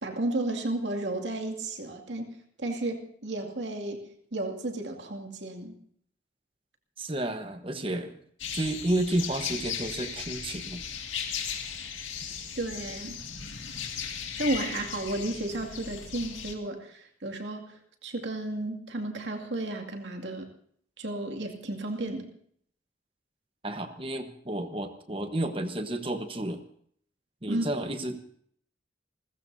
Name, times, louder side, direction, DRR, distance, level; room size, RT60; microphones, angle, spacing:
voice 1, 0.0-2.3 2.6-5.8 12.6-13.2 14.4-17.8 18.0-20.5 21.0-22.3 27.5-27.7, right 2 dB, 70° right, 2 dB, 2.3 m, -33 dB
voice 2, 7.0-8.2 8.5-10.8 23.6-26.6 27.4-28.2, right 1 dB, 30° right, 8 dB, 1.1 m, -31 dB
sound 1, 8.4-16.5, left 7 dB, 85° left, 2.1 m, -37 dB
29.0 x 14.5 x 2.7 m, 0.63 s
head